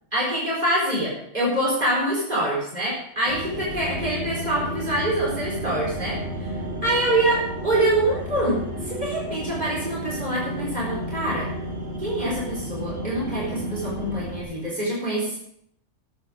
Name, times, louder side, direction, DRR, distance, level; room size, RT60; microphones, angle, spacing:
voice 1, 0.1-6.5 6.8-11.5 12.0-15.4, right 1 dB, 35° right, -5 dB, 4.5 m, -25 dB
sound 1, 3.2-14.4, right 1 dB, 80° right, 5.3 m, -32 dB
14.0 x 10.0 x 5.1 m, 0.71 s
omnidirectional pair, 1.3 m